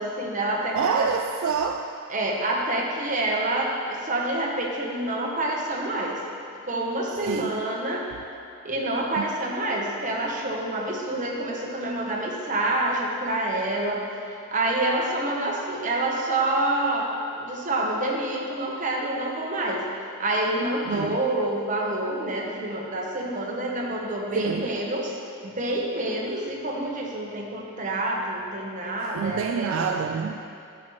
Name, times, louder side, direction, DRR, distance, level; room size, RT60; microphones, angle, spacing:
voice 1, 0.0-1.1 2.1-6.2 6.7-8.1 8.6-14.0 14.5-19.8 20.2-30.0, right 1 dB, 35° right, -2 dB, 1.0 m, -27 dB
voice 2, 0.7-1.9 7.2-7.6 9.2-9.3 20.9-21.2 24.3-24.8 29.1-30.4, right 6 dB, 65° right, 4 dB, 0.3 m, -27 dB
11.0 x 6.1 x 3.2 m, 2.6 s
head